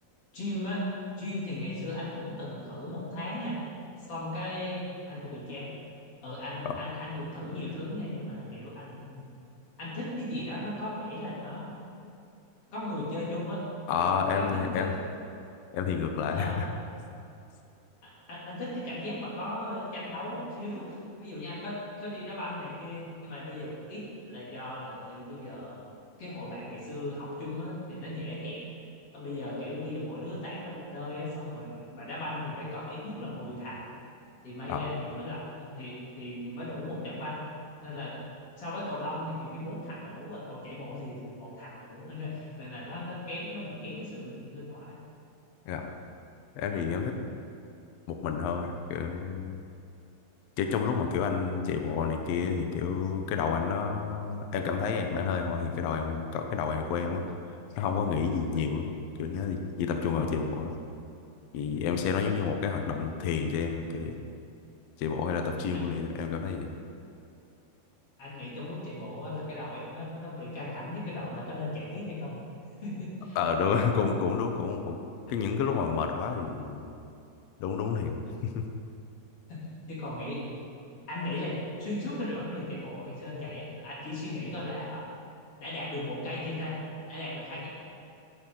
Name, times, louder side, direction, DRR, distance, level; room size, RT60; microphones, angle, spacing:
voice 1, 0.3-0.9 1.2-3.6 4.1-5.7 6.2-9.3 9.8-11.7 12.7-13.6 14.0-14.9 16.3-16.6 18.0-25.8 26.2-28.6 29.1-34.0 34.4-37.5 37.8-38.2 38.6-45.0 65.7-65.9 68.2-72.4 72.8-73.4 79.5-80.6 80.9-85.1 85.6-86.8 87.1-87.7, left 1 dB, 50° left, -7 dB, 4.0 m, -37 dB
voice 2, 13.9-14.9 15.7-16.7 34.7-34.9 45.7-45.9 46.6-47.1 48.1-49.6 50.6-57.2 57.8-58.9 59.2-60.7 61.5-64.2 65.0-66.7 73.4-75.0 75.3-76.9 77.6-78.6, left 6 dB, 70° left, 4 dB, 1.7 m, -30 dB
16.5 x 10.5 x 3.9 m, 2.7 s
omnidirectional pair, 3.7 m